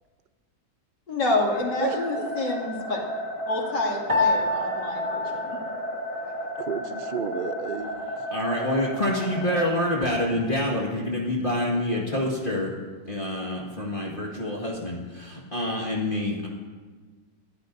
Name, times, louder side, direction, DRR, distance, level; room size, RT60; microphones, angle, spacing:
voice 1, 1.1-3.0 3.5-5.6, left 2 dB, 75° left, -2 dB, 3.3 m, -28 dB
sound 1, 1.5-9.8, equal, 50° left, 2.1 m, -33 dB
voice 2, 1.8-2.5 6.6-8.1, right 6 dB, 65° right, 9 dB, 0.5 m, -32 dB
Piano, 4.1-6.6, left 3 dB, 20° right, 2.3 m, -28 dB
voice 3, 8.3-12.7 13.1-16.5, left 1 dB, 30° left, -3 dB, 2.0 m, -27 dB
22.5 x 15.5 x 2.7 m, 1.4 s
omnidirectional pair, 1.9 m